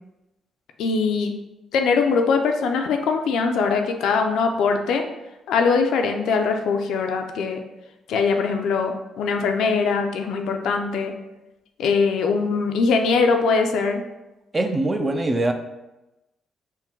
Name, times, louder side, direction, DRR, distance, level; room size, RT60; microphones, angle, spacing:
voice 1, 0.8-1.3 1.7-5.0 5.5-7.6 8.1-11.1 11.8-14.0, left 5 dB, 80° left, 4 dB, 0.4 m, -21 dB
voice 2, 14.5-15.5, right 2 dB, 25° right, 6 dB, 0.4 m, -22 dB
3.6 x 2.1 x 4.4 m, 0.98 s
cardioid pair, 90°, 0 cm